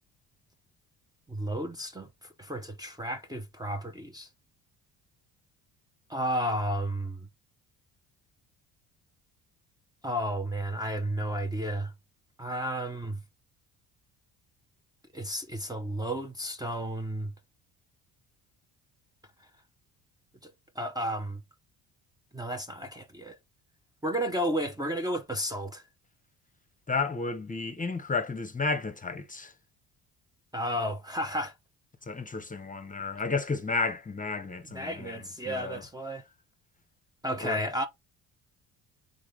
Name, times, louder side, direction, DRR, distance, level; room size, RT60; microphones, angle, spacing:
voice 1, 1.3-4.3 6.1-7.3 10.0-11.9 12.4-13.2 15.1-17.3 20.4-21.4 22.3-23.4 24.0-25.8 30.5-31.5 34.7-36.2 37.2-37.9, equal, 10° right, 0.8 m, -32 dB
voice 2, 26.9-29.5 32.1-35.8 37.4-37.6, left 4 dB, 20° left, 1.0 m, -32 dB
3.9 x 3.7 x 3.2 m
supercardioid pair, 70°, 39 cm